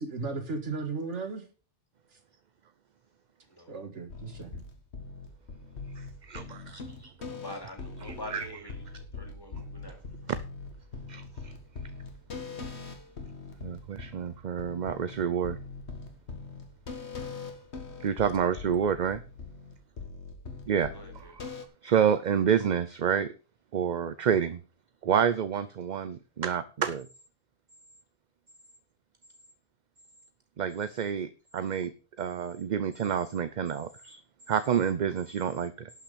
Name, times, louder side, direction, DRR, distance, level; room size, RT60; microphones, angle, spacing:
voice 1, 0.0-1.4 3.7-4.6, right 3 dB, 85° right, 6 dB, 2.1 m, -35 dB
sound 1, 4.1-21.6, left 4 dB, 70° left, 1.8 m, -42 dB
voice 2, 6.0-7.1 8.0-8.5 10.3-10.4 11.1-11.5 13.6-15.6 18.0-19.2 20.7-21.5 21.8-23.3 23.7-24.6 25.0-27.1 30.6-31.9 32.2-34.2 34.5-35.9, right 8 dB, 50° right, 13 dB, 0.6 m, -29 dB
voice 3, 7.2-10.3 20.9-21.4, left 1 dB, 20° left, 3 dB, 3.0 m, -45 dB
11.5 x 5.9 x 6.7 m, 0.36 s
omnidirectional pair, 1.2 m